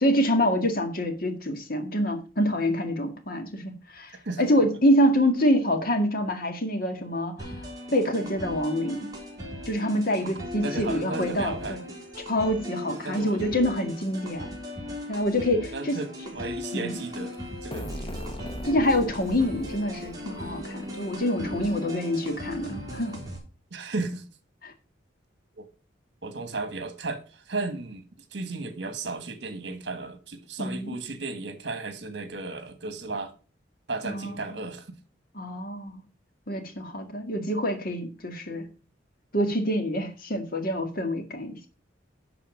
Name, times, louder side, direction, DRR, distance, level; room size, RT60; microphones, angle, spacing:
voice 1, 0.0-7.5 7.9-9.1 9.7-11.8 12.3-14.6 15.1-16.0 16.7-17.0 18.6-23.2 24.6-24.7 30.6-31.0 34.0-34.4 35.3-36.0 36.5-38.6 39.3-41.7, equal, 50° left, 1.8 m, -26 dB
sound 1, 7.4-23.4, left 1 dB, 20° right, 3.5 m, -38 dB
voice 2, 10.6-11.8 13.0-13.4 15.7-17.4 17.6-17.9 23.7-24.2 25.5-25.7 26.2-28.0 28.3-33.3 33.9-34.9, right 3 dB, 60° right, 1.5 m, -34 dB
sound 2, 17.7-21.4, equal, 25° left, 1.0 m, -39 dB
10.5 x 4.2 x 6.3 m
head